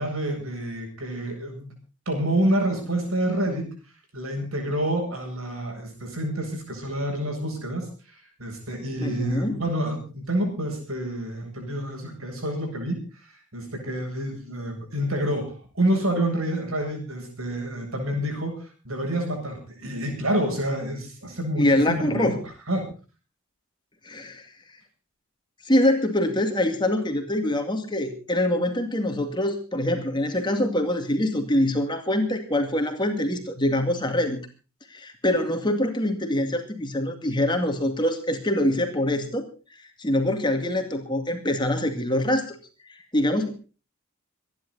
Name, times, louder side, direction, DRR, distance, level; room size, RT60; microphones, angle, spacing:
voice 1, 0.0-1.7 2.1-3.7 4.1-22.4 22.7-22.9, right 1 dB, 80° right, 2 dB, 7.6 m, -28 dB
voice 2, 9.0-9.6 21.6-22.4 24.0-24.5 25.6-34.4 34.9-39.4 39.7-42.6 42.9-43.5, left 1 dB, 20° left, 5 dB, 2.2 m, -24 dB
26.5 x 11.0 x 4.1 m, 0.35 s
head